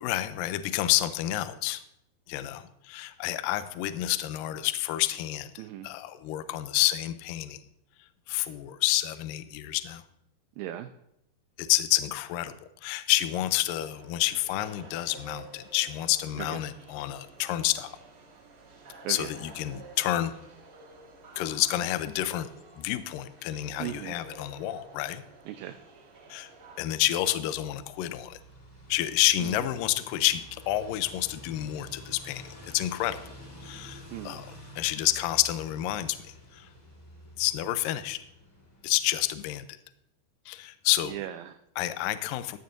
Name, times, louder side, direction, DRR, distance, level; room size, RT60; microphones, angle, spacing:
voice 1, 0.0-1.8 2.3-7.6 8.3-10.0 11.6-12.5 12.8-18.0 19.1-20.3 21.4-22.5 22.8-25.2 26.3-26.5 26.8-28.4 28.9-33.2 33.6-36.2 36.5-36.7 37.4-38.2 38.8-39.7 40.5-41.2 41.8-42.6, left 15 dB, 85° left, 12 dB, 2.1 m, -29 dB
voice 2, 5.6-5.9 10.6-10.9 16.4-16.6 19.0-19.3 23.8-24.2 25.5-25.8 29.4-29.6 34.1-34.4 41.1-41.6, right 12 dB, 80° right, 8 dB, 2.2 m, -37 dB
sound 1, 13.8-26.8, right 3 dB, 45° right, 2.1 m, -51 dB
sound 2, 27.6-39.3, left 1 dB, 45° left, 0.5 m, -49 dB
14.5 x 12.5 x 2.6 m, 0.79 s
omnidirectional pair, 4.5 m